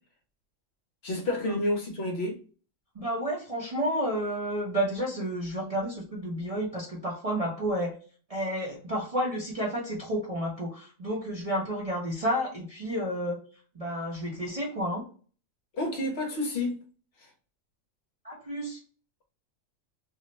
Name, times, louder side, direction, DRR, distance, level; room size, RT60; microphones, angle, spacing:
voice 1, 1.0-2.4 15.7-16.8 17.2-17.3, left 1 dB, 60° left, 0.8 m, -30 dB
voice 2, 2.9-7.9 8.3-13.4 13.7-15.1 18.2-18.8, equal, 40° right, 0.5 m, -31 dB
2.5 x 2.0 x 3.8 m
omnidirectional pair, 1.4 m